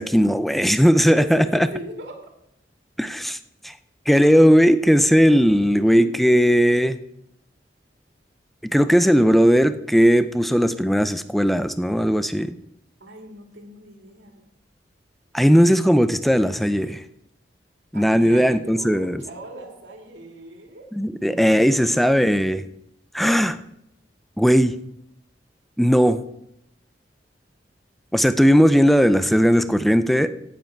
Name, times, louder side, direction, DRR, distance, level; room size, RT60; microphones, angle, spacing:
voice 1, 0.0-1.7 3.0-3.4 3.6-3.7 4.1-6.9 8.7-12.6 15.3-17.0 17.9-19.2 20.9-22.6 23.1-23.6 24.4-24.7 25.8-26.2 28.1-30.3, equal, ahead, 12 dB, 0.5 m, -17 dB
voice 2, 1.0-2.3 5.8-6.7 13.0-14.5 17.9-20.9, right 1 dB, 85° right, 2 dB, 2.5 m, -39 dB
16.0 x 7.9 x 4.6 m, 0.79 s
head